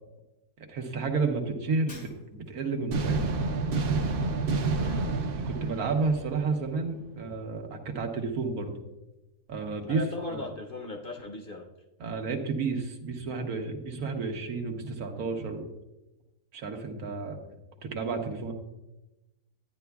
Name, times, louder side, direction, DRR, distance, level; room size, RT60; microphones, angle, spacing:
voice 1, 0.7-3.2 5.3-8.7 9.5-10.0 10.3-10.5 12.0-15.7 16.5-17.4 17.8-18.5, right 4 dB, 90° right, 4 dB, 1.5 m, -31 dB
Shatter, 1.9-2.7, left 1 dB, 90° left, 2.8 m, -50 dB
sound 1, 2.9-6.9, right 3 dB, 60° right, 0.6 m, -29 dB
voice 2, 4.7-5.1 9.9-11.7, left 2 dB, 50° left, 2 dB, 0.7 m, -38 dB
12.0 x 9.3 x 2.3 m, 1.0 s
omnidirectional pair, 1.5 m